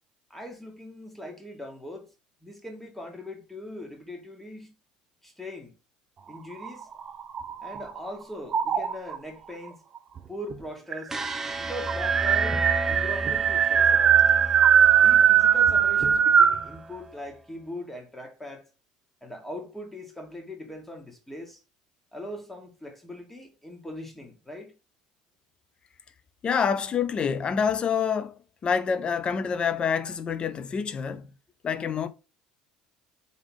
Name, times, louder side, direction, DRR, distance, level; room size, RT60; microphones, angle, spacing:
voice 1, 0.3-2.1 2.4-4.7 5.2-5.7 6.3-6.9 7.6-9.8 10.3-11.1 11.6-14.2 14.9-18.7 19.2-21.6 22.1-24.7, left 1 dB, 10° left, 1.8 m, -40 dB
sound 1, 6.5-8.0 8.5-9.2 10.2-10.3 10.5-10.6 10.9-16.7, right 8 dB, 45° right, 0.5 m, -20 dB
sound 2, 11.1-17.2, right 1 dB, 15° right, 0.8 m, -34 dB
voice 2, 26.4-31.3 31.6-32.1, left 6 dB, 40° left, 0.6 m, -27 dB
3.8 x 3.5 x 3.7 m
supercardioid pair, 80°, 3 cm